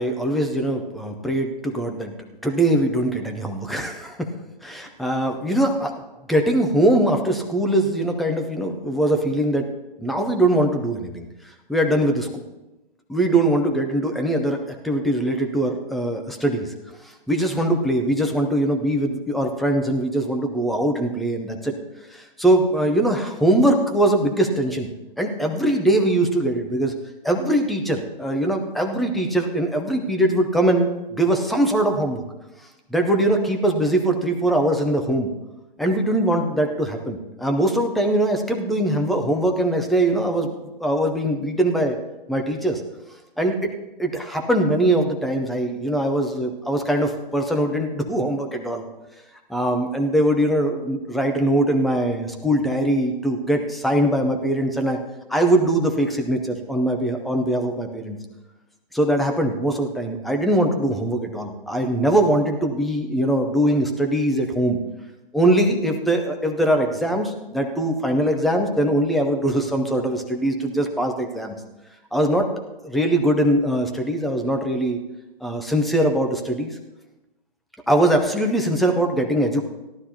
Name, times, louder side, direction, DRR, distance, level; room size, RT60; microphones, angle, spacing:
voice 1, 0.0-2.1 2.4-4.3 4.6-5.9 6.3-9.7 10.0-12.3 13.1-16.7 17.0-21.7 22.1-24.9 25.2-26.9 27.2-32.2 32.9-35.3 35.8-42.0 42.3-42.8 43.4-43.7 44.0-48.8 49.5-55.0 55.3-58.2 58.9-64.8 65.3-71.6 72.1-72.5 72.8-75.0 75.4-76.8 77.9-79.6, right 1 dB, ahead, 3 dB, 0.4 m, -22 dB
17.5 x 11.5 x 2.8 m, 1.0 s
hypercardioid pair, 135°, 29 cm